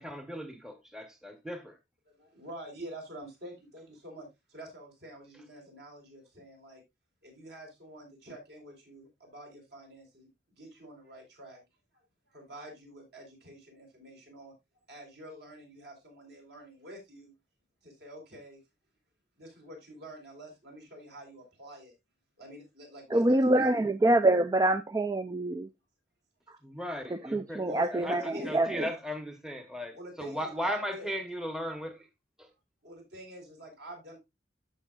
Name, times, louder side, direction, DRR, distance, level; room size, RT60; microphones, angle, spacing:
voice 1, 0.0-1.8 26.6-32.1 32.4-32.5, equal, 5° right, 0.9 m, -37 dB
voice 2, 2.1-6.8 7.2-10.3 10.6-11.6 12.3-14.5 14.9-17.3 17.8-18.6 19.4-21.9 22.4-23.8 27.6-29.0 29.9-31.1 32.8-34.2, right 1 dB, 60° right, 4.0 m, -47 dB
voice 3, 23.1-25.7 27.3-28.7, right 1 dB, 20° right, 0.3 m, -25 dB
13.5 x 5.4 x 2.3 m
head